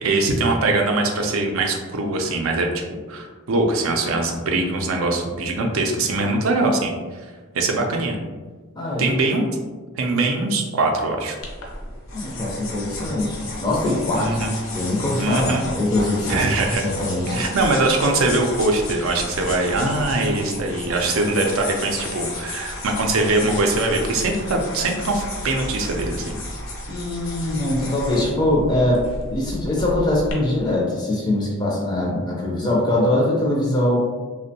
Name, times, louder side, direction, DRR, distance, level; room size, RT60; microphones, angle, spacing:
voice 1, 0.0-2.7 3.1-7.0 7.5-8.2 9.0-9.5 10.0-11.4 14.1-14.5 15.2-15.7 16.3-16.8 17.3-26.3, right 2 dB, 80° right, 3 dB, 0.4 m, -22 dB
voice 2, 8.7-9.1 12.1-14.4 14.7-16.4 16.8-17.5 26.9-29.0 29.3-34.0, left 1 dB, 20° left, -4 dB, 0.4 m, -22 dB
sound 1, 11.4-30.3, left 1 dB, 75° left, 0.6 m, -32 dB
2.5 x 2.1 x 2.6 m, 1.4 s
head